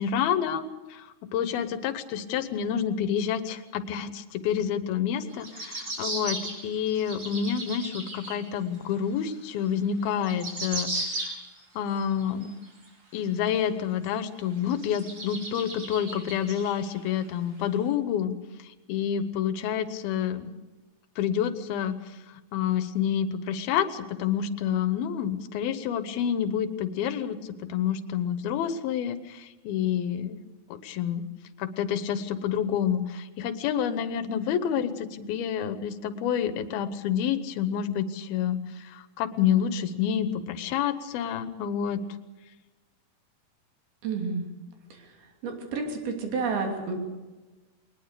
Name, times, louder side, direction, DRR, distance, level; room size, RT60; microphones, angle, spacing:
voice 1, 0.0-11.4 11.8-12.5 13.1-18.3 18.9-20.5 21.2-22.0 22.5-27.4 27.7-30.4 30.7-31.2 31.6-38.6 38.9-42.0, left 8 dB, 80° left, 12 dB, 2.9 m, -28 dB
sound 1, 5.3-8.4 8.9-9.0 9.8-9.9 10.0-11.6 12.0-12.9 13.5-13.6 14.0-14.1 14.7-17.1 17.6-17.7, right 1 dB, 35° right, 5.1 m, -36 dB
voice 2, 44.0-44.5 44.9-47.0, right 4 dB, 80° right, 3 dB, 4.9 m, -31 dB
21.0 x 20.0 x 6.8 m, 1.2 s
omnidirectional pair, 4.3 m